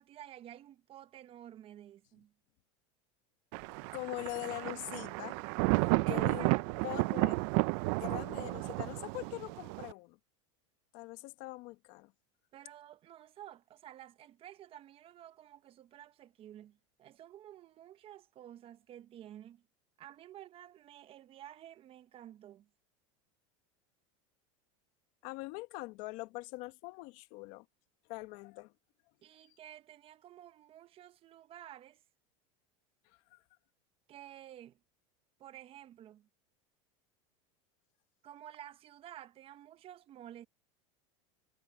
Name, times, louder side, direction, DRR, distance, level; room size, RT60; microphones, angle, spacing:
voice 1, 0.0-2.3 6.0-7.0 12.5-19.6 20.0-22.7 29.2-32.0 34.1-34.8 35.4-36.3 38.2-40.5, right 11 dB, 35° right, 1.0 m, -52 dB
Thunder, 3.5-9.9, right 25 dB, 60° right, 0.5 m, -32 dB
voice 2, 3.9-5.4 6.0-6.5 6.8-7.3 8.0-10.2 10.9-12.1 25.2-27.6 28.1-28.7 29.4-29.5 33.3-33.4, left 22 dB, 60° left, 1.4 m, -42 dB
supercardioid pair, 125°, 16 cm